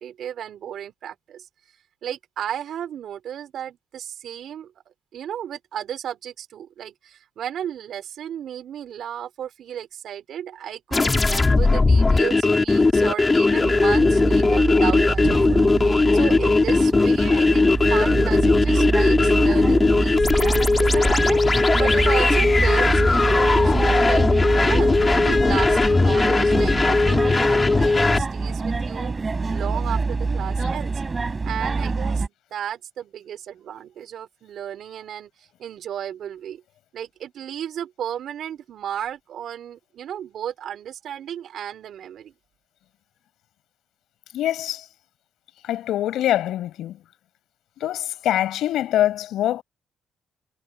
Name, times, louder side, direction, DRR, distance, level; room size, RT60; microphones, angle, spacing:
voice 1, 0.0-1.4 2.0-4.7 5.1-29.1 29.4-30.9 31.4-32.2 32.5-36.6 36.9-42.3, right 10 dB, 70° right, 4.9 m, -34 dB
sound 1, 10.9-28.2, left 3 dB, 25° left, 6.3 m, -18 dB
sound 2, 13.5-32.3, right 4 dB, 30° right, 7.3 m, -25 dB
voice 2, 44.3-44.8 45.6-47.0 47.8-49.6, left 12 dB, 80° left, 7.4 m, -24 dB
cardioid pair, 90°, 0 cm